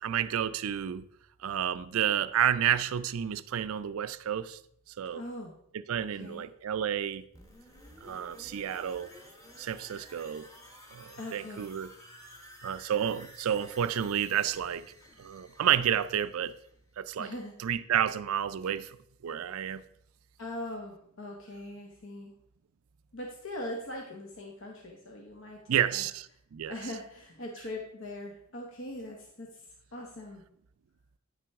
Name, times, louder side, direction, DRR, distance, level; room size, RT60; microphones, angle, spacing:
voice 1, 0.0-1.0 1.4-4.6 5.0-5.2 5.9-7.2 8.0-9.1 9.6-10.5 10.9-11.9 12.6-14.8 15.2-16.5 17.0-17.3 17.6-18.9 19.2-19.8 25.7-26.3 26.5-26.7, right 9 dB, 75° right, 0.4 m, -30 dB
voice 2, 5.1-5.5 6.1-6.4 11.2-11.7 17.2-17.5 20.4-22.3 23.1-26.1 26.7-30.4, left 1 dB, 60° left, 1.0 m, -41 dB
sound 1, 7.3-17.1 17.4-17.5, equal, 15° left, 1.2 m, -53 dB
9.7 x 5.9 x 3.5 m
head